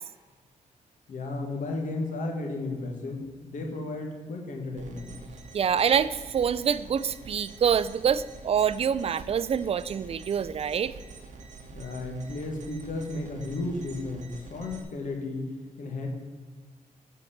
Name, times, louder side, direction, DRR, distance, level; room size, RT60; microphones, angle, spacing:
voice 1, 1.1-5.2 11.7-15.5 15.8-16.1, left 2 dB, 75° left, 2 dB, 1.6 m, -34 dB
sound 1, 4.8-14.8, right 4 dB, 65° right, 1.1 m, -46 dB
voice 2, 5.5-10.9, right 7 dB, 45° right, 16 dB, 0.4 m, -26 dB
7.9 x 4.6 x 7.2 m, 1.5 s
wide cardioid pair, 115°, 14 cm